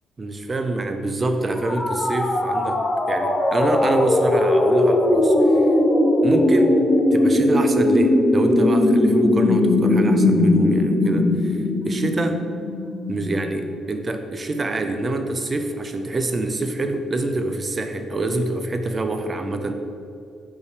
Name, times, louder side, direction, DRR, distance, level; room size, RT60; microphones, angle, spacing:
voice 1, 0.2-2.8 3.1-5.7 6.2-6.8 7.1-12.4 13.1-19.7, right 2 dB, 30° right, 6 dB, 0.7 m, -25 dB
sound 1, 1.6-13.4, left 1 dB, 30° left, 0.8 m, -19 dB
5.4 x 4.8 x 5.0 m, 2.5 s
cardioid pair, 90°, 0 cm